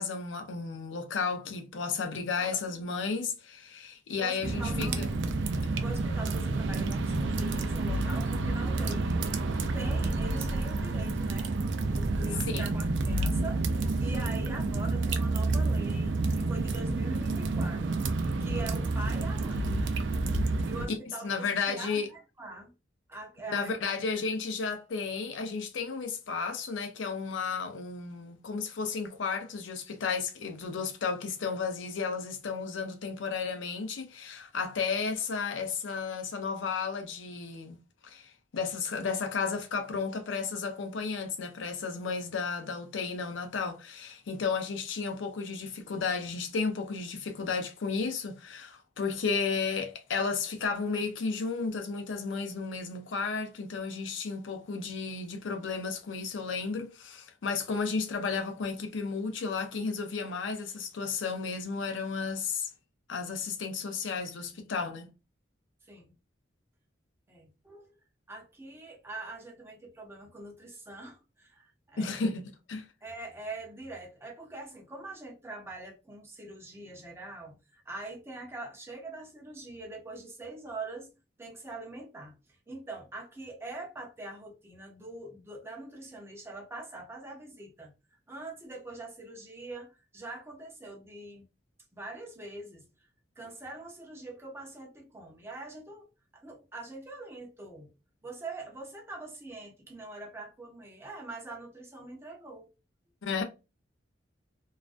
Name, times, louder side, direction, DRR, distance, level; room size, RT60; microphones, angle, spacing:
voice 1, 0.0-5.1 12.5-12.6 21.2-22.1 23.5-62.7 63.1-65.1 72.0-72.9 103.2-103.4, left 5 dB, 85° left, 0.5 m, -33 dB
voice 2, 4.2-5.1 5.8-9.5 9.7-19.8 20.4-22.7 23.1-23.9 65.9-66.1 67.3-67.9 68.3-72.2 73.0-81.1 81.4-82.4 82.7-91.4 91.9-92.9 93.4-96.1 96.3-97.9 98.2-102.7, right 2 dB, 15° right, 0.6 m, -43 dB
sound 1, 4.4-20.9, right 2 dB, 70° right, 0.4 m, -29 dB
2.4 x 2.2 x 2.4 m
head